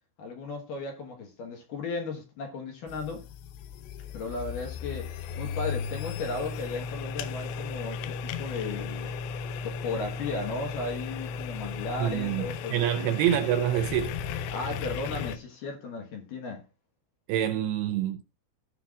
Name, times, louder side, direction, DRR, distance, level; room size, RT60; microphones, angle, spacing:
voice 1, 0.2-3.2 4.1-5.1 5.4-9.1 9.6-13.2 14.5-16.6, left 3 dB, 65° left, 2.4 m, -35 dB
sound 1, 2.9-15.4, left 6 dB, 80° left, 2.9 m, -36 dB
voice 2, 12.0-12.5 12.7-14.1 17.3-18.2, right 11 dB, 80° right, 2.3 m, -26 dB
16.0 x 5.6 x 2.4 m
omnidirectional pair, 5.2 m